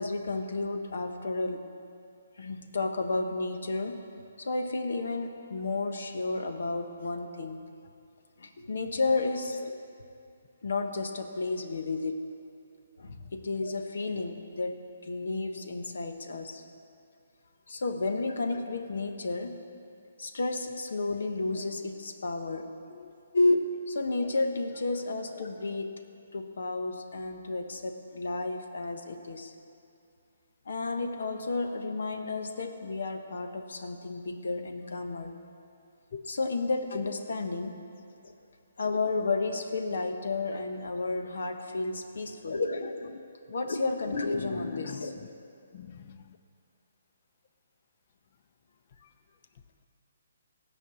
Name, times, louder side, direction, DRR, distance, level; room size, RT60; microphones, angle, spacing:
voice 1, 0.0-1.7 2.4-4.1 4.4-7.6 8.4-9.8 10.6-12.2 13.0-16.6 17.7-19.6 20.2-22.8 23.3-26.1 26.3-29.5 30.7-35.3 36.3-37.9 38.2-38.3 38.8-43.1 43.5-45.2, left 3 dB, 75° left, 6 dB, 1.1 m, -32 dB
voice 2, 44.4-45.3 45.7-46.3, left 5 dB, 45° left, 9 dB, 0.7 m, -41 dB
16.0 x 5.4 x 8.2 m, 2.5 s
hypercardioid pair, 165°, 0 cm